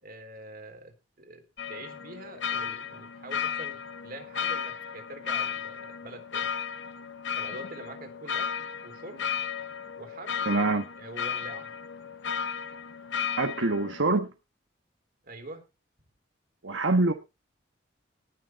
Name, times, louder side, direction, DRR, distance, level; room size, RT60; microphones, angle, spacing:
voice 1, 0.0-1.4 1.7-6.5 7.4-9.3 10.0-10.5 11.0-11.7 15.2-15.6, right 2 dB, 50° right, 3.7 m, -45 dB
sound 1, 1.6-14.2, left 7 dB, 70° left, 1.0 m, -34 dB
voice 2, 10.5-10.8 13.4-14.3 16.6-17.1, right 3 dB, 80° right, 1.3 m, -25 dB
19.0 x 6.7 x 4.6 m
head